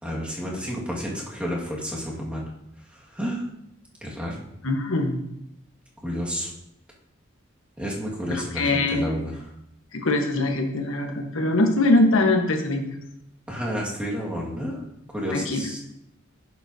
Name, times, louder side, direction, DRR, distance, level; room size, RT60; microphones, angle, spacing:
voice 1, 0.0-2.5 2.9-3.4 4.0-4.4 6.0-6.5 7.8-9.4 13.5-14.8 15.1-15.8, equal, 5° right, -4 dB, 1.8 m, -30 dB
voice 2, 4.6-5.2 8.3-9.1 9.9-13.0 15.3-15.6, left 2 dB, 85° left, 3 dB, 1.2 m, -22 dB
10.5 x 7.2 x 2.7 m, 0.82 s
head